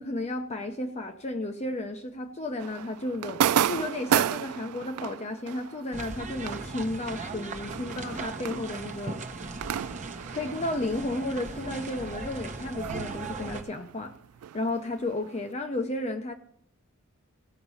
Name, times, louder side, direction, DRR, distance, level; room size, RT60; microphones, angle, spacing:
voice 1, 0.0-3.4 3.7-9.2 10.3-14.1 14.5-16.3, left 2 dB, 30° left, 0.7 m, -33 dB
sound 1, 2.6-11.6 11.8-15.4, right 9 dB, 75° right, 0.3 m, -33 dB
sound 2, 5.9-13.6, right 3 dB, 35° right, 1.0 m, -38 dB
16.0 x 5.9 x 5.5 m
head